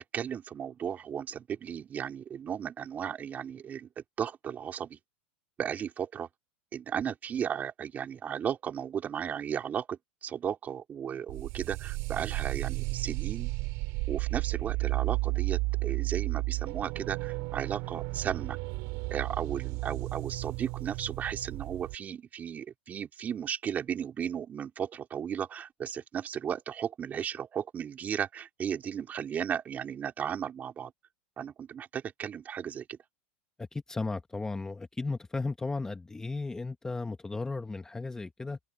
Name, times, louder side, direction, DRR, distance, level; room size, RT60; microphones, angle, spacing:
voice 1, 0.0-5.0 5.6-6.3 6.7-13.5 14.1-18.6 19.1-30.9 31.4-33.0, right 8 dB, 25° right, 3.9 m, -35 dB
sound 1, 11.3-22.0, right 26 dB, 55° right, 2.9 m, -33 dB
voice 2, 33.6-38.6, left 3 dB, 10° left, 1.4 m, -35 dB
supercardioid pair, 120°, 6 cm